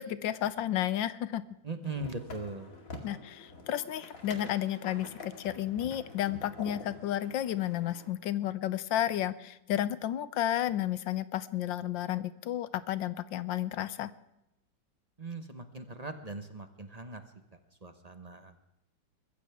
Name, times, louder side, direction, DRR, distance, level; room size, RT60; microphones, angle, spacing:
voice 1, 0.0-1.4 3.0-14.1, left 12 dB, 75° left, 15 dB, 1.4 m, -32 dB
voice 2, 1.6-2.7 15.2-17.2 17.5-18.6, right 3 dB, 25° right, 8 dB, 0.9 m, -40 dB
sound 1, 1.8-8.1, left 3 dB, 45° left, 2.5 m, -47 dB
22.0 x 15.0 x 3.5 m, 0.85 s
omnidirectional pair, 2.2 m